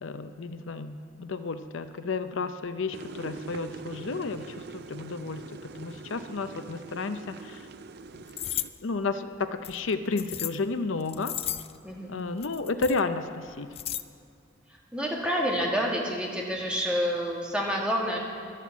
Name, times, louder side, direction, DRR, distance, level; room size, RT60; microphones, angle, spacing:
voice 1, 0.0-7.7 8.1-8.2 8.8-11.3 12.1-13.7, left 3 dB, 75° left, 10 dB, 0.6 m, -32 dB
sound 1, 2.9-8.7, right 4 dB, 55° right, 0.5 m, -44 dB
sound 2, 8.3-8.7 9.6-10.6 11.0-11.8 12.4-13.0 13.5-14.0, left 12 dB, 30° left, 0.3 m, -34 dB
voice 2, 11.8-12.2 14.9-18.2, equal, 5° right, -2 dB, 2.0 m, -28 dB
11.5 x 11.5 x 7.2 m, 2.4 s
head